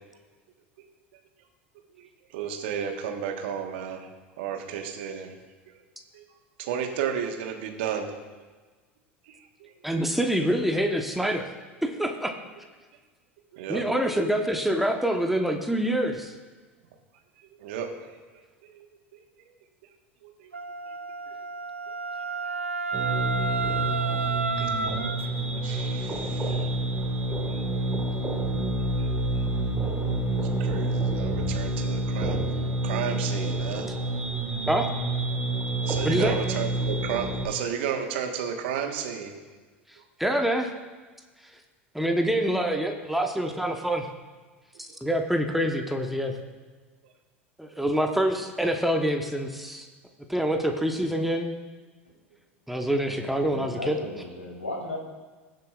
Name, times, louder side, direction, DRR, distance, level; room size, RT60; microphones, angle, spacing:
voice 1, 2.0-4.1 4.4-5.3 5.7-5.8 6.1-6.2 6.6-8.1 9.3-9.7 13.5-13.9 17.4-18.9 19.1-19.2 20.2-20.6 20.9-21.0 21.3-21.4 23.0-23.8 24.5-24.9 25.6-26.7 27.2-27.6 29.0-29.1 30.6-32.4 32.8-33.9 35.8-39.3 44.9-45.0 47.7-47.8, right 8 dB, 60° right, 4 dB, 1.4 m, -33 dB
voice 2, 9.8-11.4 11.8-12.3 13.7-16.3 34.7-34.9 36.0-36.4 40.2-40.7 41.9-44.1 44.8-46.3 47.6-49.9 50.3-51.6 52.7-54.0, equal, ahead, 3 dB, 1.1 m, -26 dB
Wind instrument woodwind instrument, 20.5-25.2, right 4 dB, 90° right, 0.5 m, -31 dB
sound 1, 22.9-37.5, right 2 dB, 20° right, 1.6 m, -28 dB
voice 3, 53.0-55.0, left 2 dB, 85° left, -3 dB, 3.4 m, -36 dB
21.0 x 7.4 x 2.5 m, 1.4 s
figure-of-eight pair, 80°, 7 cm